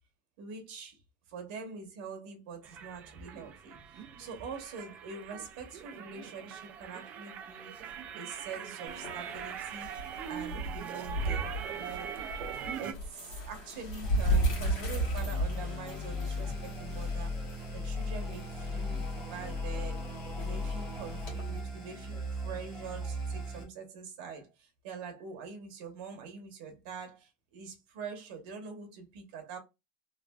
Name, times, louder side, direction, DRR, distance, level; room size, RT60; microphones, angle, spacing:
voice 1, 0.4-1.0 1.3-7.8 8.1-9.9 10.3-12.2 12.8-17.4 17.7-20.0 20.4-29.6, right 5 dB, 60° right, 1.0 m, -44 dB
sound 1, 2.6-12.9, right 8 dB, 30° right, 0.3 m, -42 dB
sound 2, 8.9-21.6, right 1 dB, 50° left, 1.1 m, -36 dB
sound 3, 14.0-23.6, left 1 dB, 15° left, 0.8 m, -36 dB
3.2 x 2.4 x 2.2 m
supercardioid pair, 175°, 5 cm